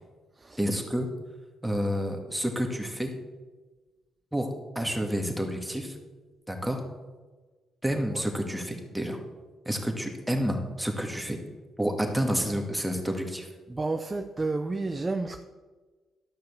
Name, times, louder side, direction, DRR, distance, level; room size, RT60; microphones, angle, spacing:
voice 1, 0.6-1.1 1.6-3.1 4.3-4.5 4.8-5.9 6.5-6.8 7.8-9.2 9.7-11.4 11.8-13.5, equal, 5° right, 3 dB, 2.1 m, -29 dB
voice 2, 13.7-15.4, right 3 dB, 20° right, 6 dB, 0.7 m, -30 dB
13.0 x 5.9 x 7.3 m, 1.3 s
cardioid pair, 90°, 0 cm